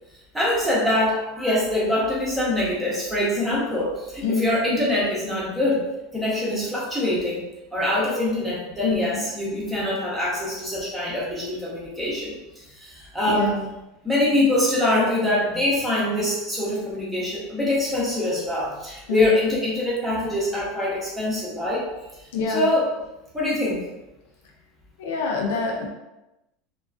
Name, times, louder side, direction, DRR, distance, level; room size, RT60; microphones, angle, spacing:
voice 1, 0.3-5.9 6.1-7.4 7.7-13.5 14.0-21.9 22.2-22.9 23.3-23.9, left 1 dB, 5° right, -6 dB, 0.6 m, -24 dB
voice 2, 8.8-9.2 13.2-13.7 19.1-19.3 22.3-22.6 25.0-25.9, left 4 dB, 85° left, 0 dB, 0.5 m, -25 dB
2.3 x 2.2 x 2.4 m, 0.97 s
supercardioid pair, 175°, 0 cm